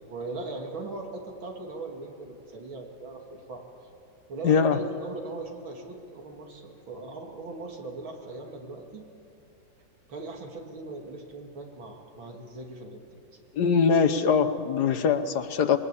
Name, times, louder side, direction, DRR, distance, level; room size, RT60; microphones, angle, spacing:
voice 1, 0.1-3.6 4.3-9.0 10.1-13.0, right 2 dB, 85° right, 2 dB, 3.2 m, -39 dB
voice 2, 4.4-4.8 13.6-15.8, left 6 dB, 60° left, 10 dB, 1.4 m, -22 dB
26.0 x 21.0 x 8.4 m, 2.7 s
omnidirectional pair, 2.1 m